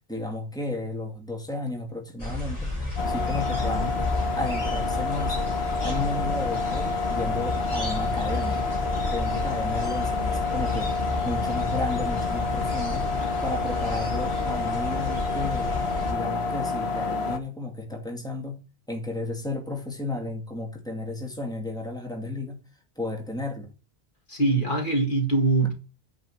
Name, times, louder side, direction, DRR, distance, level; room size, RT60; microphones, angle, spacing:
voice 1, 0.1-2.7 3.1-4.0 4.4-5.4 5.8-8.7 9.1-11.0 11.2-13.1 13.4-15.8 16.1-22.6 23.0-23.7, left 2 dB, 5° left, 2.1 m, -33 dB
sound 1, 2.2-16.1, left 2 dB, 35° left, 3.2 m, -32 dB
sound 2, 3.0-17.4, left 4 dB, 90° left, 1.3 m, -28 dB
voice 2, 24.3-25.7, right 2 dB, 55° left, 2.2 m, -23 dB
9.3 x 5.2 x 6.3 m
omnidirectional pair, 1.0 m